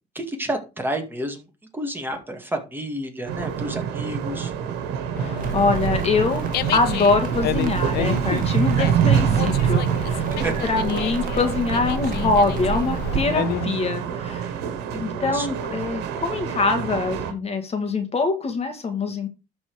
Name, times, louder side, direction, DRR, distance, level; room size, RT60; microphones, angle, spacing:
voice 1, 0.1-1.4 1.7-4.5 10.3-10.6 15.2-15.5, right 1 dB, 10° right, 3 dB, 2.2 m, -30 dB
sound 1, 3.2-17.3, right 8 dB, 90° right, 1.5 m, -26 dB
Dog, 5.1-13.7, left 14 dB, 75° left, 0.6 m, -31 dB
voice 2, 5.2-6.4 6.7-10.3 10.6-14.5 14.9-19.3, left 4 dB, 35° left, 7 dB, 1.9 m, -24 dB
Crackle, 5.4-13.2, right 8 dB, 55° right, 1.7 m, -32 dB
12.5 x 4.3 x 4.9 m, 0.29 s
cardioid pair, 110°, 17 cm